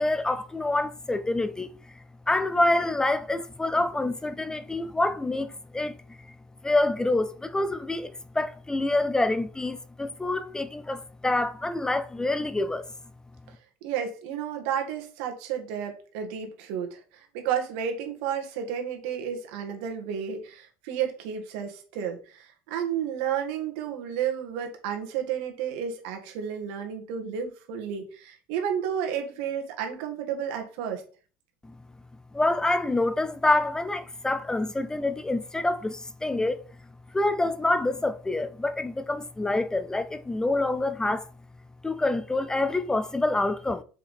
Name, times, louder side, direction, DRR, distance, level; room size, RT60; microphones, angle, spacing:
voice 1, 0.0-1.7 2.3-5.9 6.6-12.8 31.6-31.7 32.3-36.6 37.1-41.3 41.8-43.8, left 2 dB, 10° left, 0.5 m, -26 dB
voice 2, 13.8-31.0, right 8 dB, 80° right, 1.7 m, -32 dB
5.8 x 4.9 x 4.2 m
supercardioid pair, 125°, 6 cm